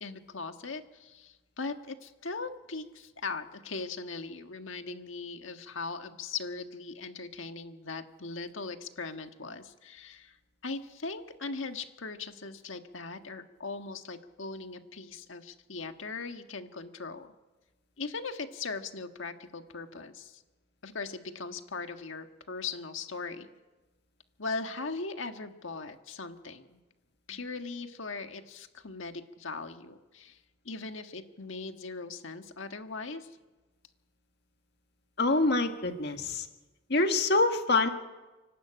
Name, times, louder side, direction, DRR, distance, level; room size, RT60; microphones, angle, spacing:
voice 1, 0.0-10.4 10.6-17.3 18.0-20.4 20.8-23.5 24.4-26.8 27.3-30.4 30.7-33.3, left 4 dB, 75° left, 7 dB, 1.6 m, -39 dB
voice 2, 35.2-36.5 36.9-37.9, left 2 dB, 55° left, 6 dB, 1.8 m, -25 dB
29.0 x 12.0 x 8.8 m, 1.2 s
head